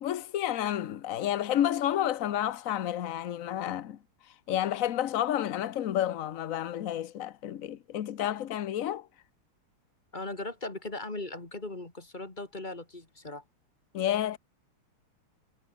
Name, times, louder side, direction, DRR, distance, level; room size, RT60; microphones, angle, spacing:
voice 1, 0.0-4.0 4.5-9.1 13.9-14.4, left 11 dB, 55° left, 0.9 m, -30 dB
voice 2, 10.1-13.4, left 2 dB, 20° left, 2.8 m, -38 dB
omnidirectional pair, 2.4 m